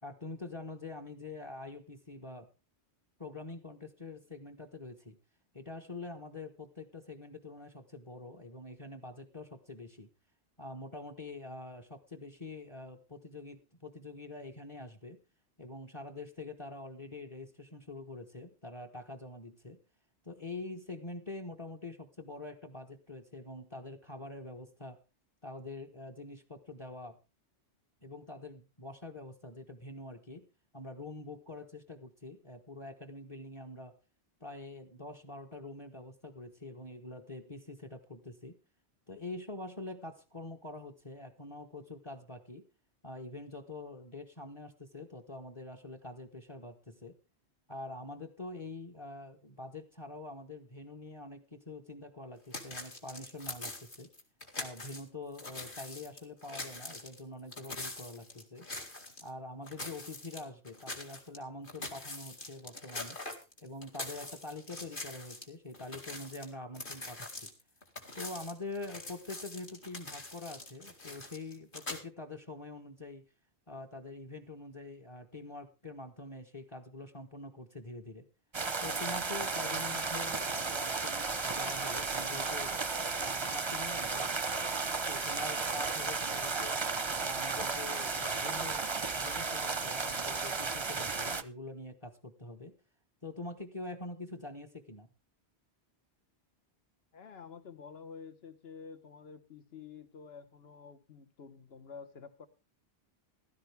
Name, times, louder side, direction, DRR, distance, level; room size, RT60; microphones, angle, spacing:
voice 1, 0.0-2.5 3.2-5.1 5.5-10.1 10.6-15.2 15.6-19.8 20.2-25.0 25.4-27.2 28.0-30.5 30.7-34.0 34.4-38.6 39.1-42.7 43.0-47.2 47.7-54.1 54.6-58.7 59.2-63.2 63.6-67.5 68.1-73.2 73.7-78.3 78.8-82.7 83.2-84.4 85.1-86.8 87.2-88.8 89.1-92.8 93.2-95.1, left 2 dB, 30° left, 1.3 m, -45 dB
sound 1, 52.5-55.0 55.3-59.3 59.6-61.4 61.6-65.5 65.7-72.0, left 2 dB, 50° left, 2.4 m, -43 dB
sound 2, 78.5-91.4, right 4 dB, 30° right, 0.7 m, -34 dB
voice 2, 97.1-102.5, left 6 dB, 65° left, 1.4 m, -49 dB
15.5 x 13.0 x 3.5 m
omnidirectional pair, 1.1 m